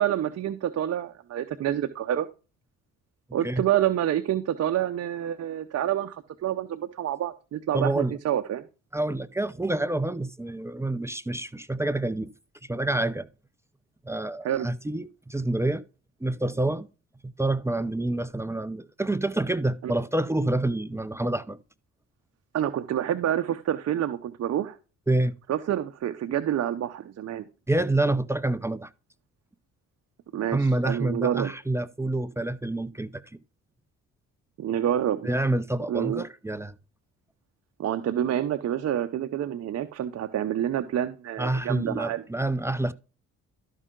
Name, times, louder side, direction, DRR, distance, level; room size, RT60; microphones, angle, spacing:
voice 1, 0.0-2.3 3.3-8.7 14.4-14.7 19.8-19.9 22.5-24.8 25.5-27.5 30.3-31.5 34.6-35.2 35.9-36.3 37.8-42.2, right 11 dB, 55° right, 0.7 m, -28 dB
voice 2, 7.7-8.2 8.9-12.3 12.7-13.3 14.1-15.8 16.2-16.9 17.2-21.6 25.1-25.3 27.7-28.9 30.5-33.1 35.2-36.7 41.4-42.9, right 2 dB, 10° right, 0.5 m, -27 dB
12.5 x 5.5 x 3.8 m
cardioid pair, 90°, 30 cm